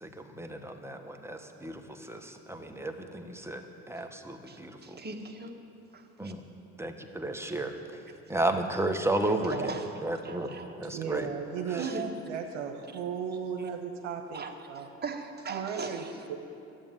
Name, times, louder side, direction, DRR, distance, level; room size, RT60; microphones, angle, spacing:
voice 1, 0.0-1.8 2.1-5.0 6.2-6.4 6.8-7.8 8.3-9.7 10.0-10.5 10.8-11.3, right 2 dB, 5° right, 5 dB, 1.4 m, -33 dB
voice 2, 4.5-5.5 5.9-6.3 9.2-10.8 11.8-12.1 14.3-16.1, right 4 dB, 25° right, 3 dB, 1.7 m, -40 dB
voice 3, 10.8-14.9 15.5-16.3, right 6 dB, 80° right, 3 dB, 1.1 m, -36 dB
13.0 x 8.8 x 9.0 m, 2.8 s
hypercardioid pair, 60°, 36 cm